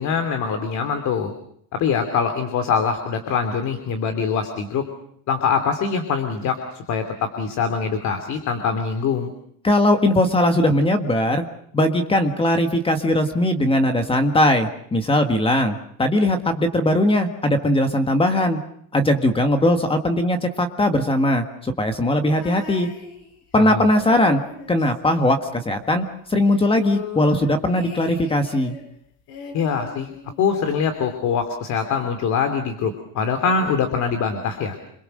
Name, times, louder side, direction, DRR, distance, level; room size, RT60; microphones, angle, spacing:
voice 1, 0.0-1.3 1.7-4.9 5.3-9.3 23.6-23.9 29.5-34.8, left 6 dB, 50° left, 7 dB, 2.9 m, -23 dB
voice 2, 9.6-11.5 11.7-18.6 18.9-22.9 23.5-24.4 24.7-28.7, left 1 dB, 15° left, 7 dB, 1.7 m, -19 dB
sound 1, 22.3-23.6 23.9-25.8 26.1-26.2 26.5-28.9 29.3-30.5 31.4-31.5, left 5 dB, 85° left, 5.4 m, -39 dB
28.0 x 22.5 x 6.6 m, 0.68 s
cardioid pair, 160°, 37 cm